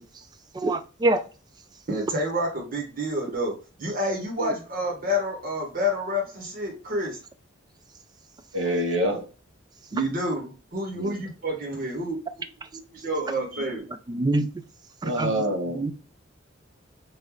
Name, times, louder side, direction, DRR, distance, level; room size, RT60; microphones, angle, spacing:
voice 1, 0.6-1.2 14.1-14.5 15.0-15.3 15.8-15.9, right 2 dB, 20° right, 10 dB, 0.3 m, -24 dB
voice 2, 1.9-7.2 9.9-13.9, equal, 45° right, -1 dB, 1.3 m, -29 dB
voice 3, 8.5-9.2 10.9-11.1 15.0-15.9, equal, 80° right, 1 dB, 1.2 m, -26 dB
3.8 x 2.6 x 3.0 m, 0.34 s
head